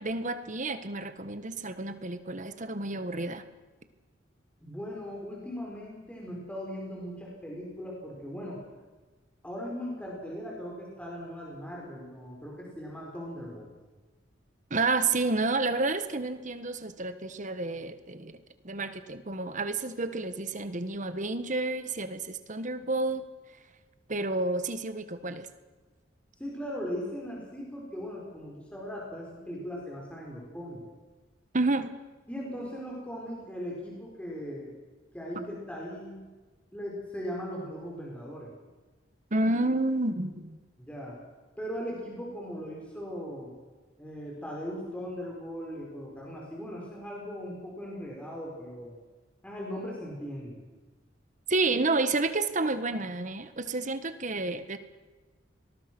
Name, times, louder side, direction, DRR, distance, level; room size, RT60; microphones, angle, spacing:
voice 1, 0.0-3.4 14.7-18.4 18.6-23.2 24.1-25.5 31.5-31.9 39.3-40.6 51.5-54.8, right 2 dB, 40° right, 10 dB, 1.5 m, -30 dB
voice 2, 4.6-8.6 9.4-13.7 26.4-30.8 32.3-34.7 35.1-36.2 36.7-38.5 40.8-41.2 41.6-43.5 44.0-48.9 49.4-50.6 51.7-51.9, equal, 5° left, -3 dB, 4.7 m, -39 dB
25.5 x 20.5 x 6.2 m, 1.3 s
head